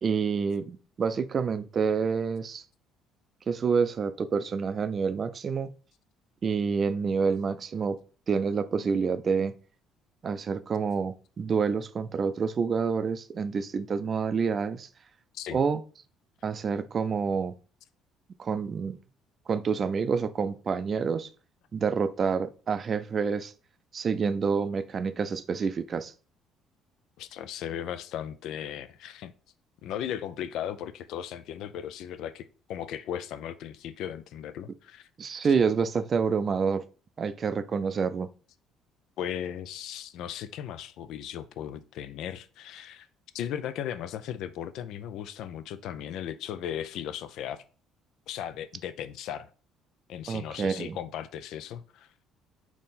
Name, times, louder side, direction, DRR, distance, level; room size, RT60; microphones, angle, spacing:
voice 1, 0.0-2.6 3.5-5.7 6.4-8.0 8.3-9.5 10.2-14.9 15.5-15.8 16.4-17.5 18.4-19.0 19.5-21.3 21.7-23.5 23.9-26.1 35.2-36.8 37.2-38.3 50.3-51.0, right 5 dB, 45° right, 0.4 m, -28 dB
voice 2, 27.2-29.3 29.8-35.1 39.2-43.1 43.3-47.6 48.3-49.5 50.1-52.1, left 10 dB, 70° left, 0.4 m, -37 dB
4.1 x 2.9 x 3.7 m
supercardioid pair, 75°, 0 cm